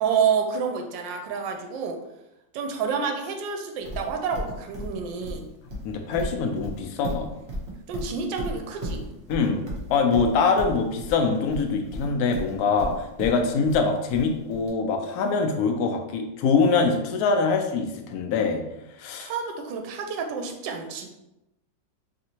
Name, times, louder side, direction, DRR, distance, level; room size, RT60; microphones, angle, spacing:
voice 1, 0.0-2.0 2.5-5.5 7.9-9.0 19.2-21.1, right 6 dB, 80° right, 4 dB, 1.2 m, -28 dB
Livestock farm animals working animals, 3.9-14.7, equal, 55° right, 0.6 m, -35 dB
voice 2, 5.8-7.3 9.3-18.6 19.0-19.3, left 4 dB, 70° left, 3 dB, 0.9 m, -24 dB
3.2 x 2.7 x 2.8 m, 0.91 s
omnidirectional pair, 2.0 m